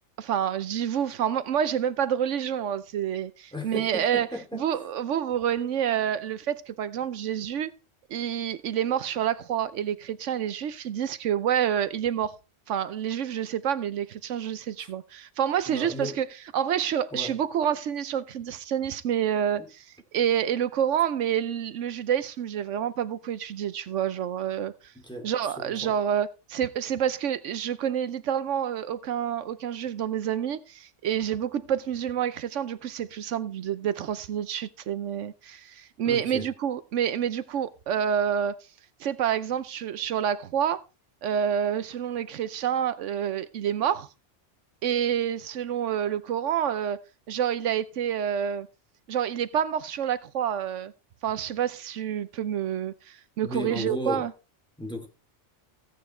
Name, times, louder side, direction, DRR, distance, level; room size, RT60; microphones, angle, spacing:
voice 1, 0.2-4.3 4.5-7.7 8.1-12.3 12.7-16.3 16.5-19.8 20.1-24.7 25.2-38.6 39.0-40.8 41.2-44.1 44.8-47.0 47.3-48.7 49.1-50.9 51.2-54.3, right 9 dB, 80° right, 1.1 m, -28 dB
voice 2, 3.5-4.6 14.8-14.9 15.7-16.2 17.1-17.3 19.5-19.7 24.9-25.3 25.6-25.9 36.0-36.5 53.4-54.3 54.8-55.1, left 1 dB, 5° left, 2.7 m, -35 dB
16.0 x 9.0 x 3.3 m
omnidirectional pair, 1.2 m